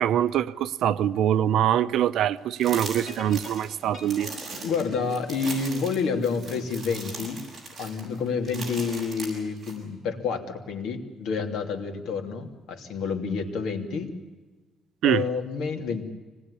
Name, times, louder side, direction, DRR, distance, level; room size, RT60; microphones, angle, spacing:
voice 1, 0.0-4.3 15.0-15.2, right 10 dB, 70° right, 0.8 m, -24 dB
sound 1, 2.6-9.7, right 3 dB, 20° right, 7.5 m, -39 dB
sound 2, 2.9-6.3, left 3 dB, 45° left, 5.6 m, -46 dB
voice 2, 4.6-7.4 7.8-14.1 15.0-16.0, left 5 dB, 75° left, 2.9 m, -29 dB
25.0 x 19.5 x 9.9 m
cardioid pair, 160°, 0 cm